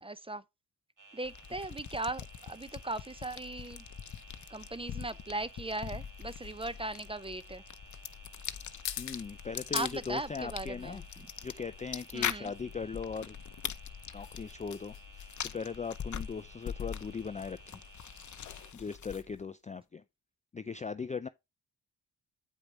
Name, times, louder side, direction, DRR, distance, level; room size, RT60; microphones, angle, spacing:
voice 1, 0.0-0.4 1.1-3.8 4.5-7.6 9.7-11.3 12.1-12.5, right 2 dB, 15° right, 0.7 m, -38 dB
sound 1, 1.0-18.7, right 2 dB, 45° right, 2.8 m, -56 dB
sound 2, 1.2-19.4, left 8 dB, 45° left, 0.8 m, -43 dB
sound 3, 3.5-19.9, left 13 dB, 85° left, 0.9 m, -48 dB
voice 2, 9.0-11.0 11.4-13.4 14.1-17.8 18.7-20.0 20.5-21.3, left 5 dB, 20° left, 0.4 m, -39 dB
8.6 x 5.1 x 3.3 m
supercardioid pair, 50°, 42 cm